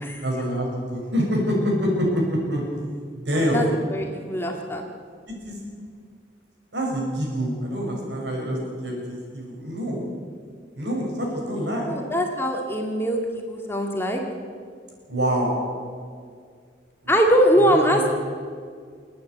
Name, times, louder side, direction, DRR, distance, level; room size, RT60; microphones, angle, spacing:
voice 1, 0.2-2.6 3.1-3.7 5.4-5.6 6.7-10.1 10.7-11.8 15.1-15.6 17.0-17.2 17.9-18.0, equal, 70° right, -1 dB, 6.6 m, -26 dB
voice 2, 3.3-4.8 11.8-14.2 17.1-18.2, equal, 10° left, 2 dB, 1.9 m, -22 dB
28.5 x 9.6 x 9.5 m, 2.1 s
head